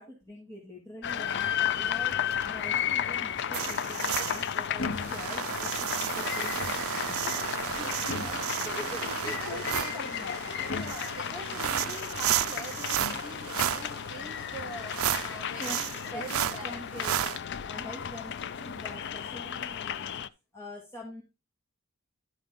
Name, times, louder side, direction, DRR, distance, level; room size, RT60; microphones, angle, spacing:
voice 1, 0.0-7.5 8.6-10.3 10.7-10.9 15.6-17.4 17.6-20.2 20.5-21.2, left 1 dB, 15° left, 2.1 m, -44 dB
sound 1, 1.0-20.3, left 9 dB, 55° left, 0.4 m, -34 dB
sound 2, 2.1-2.6 4.1-4.5 4.8-5.3 6.4-7.0 8.1-8.5 9.3-9.8 10.7-11.1 12.0-12.4 13.0-13.3 14.5-14.8 17.0-17.1 17.9-18.3 18.6-19.0, left 3 dB, 75° left, 0.8 m, -40 dB
sound 3, 3.5-17.4, right 10 dB, 85° right, 0.4 m, -33 dB
voice 2, 7.3-9.0 9.2-10.1 10.5-17.1, right 2 dB, 5° right, 4.0 m, -44 dB
12.0 x 4.9 x 3.7 m
head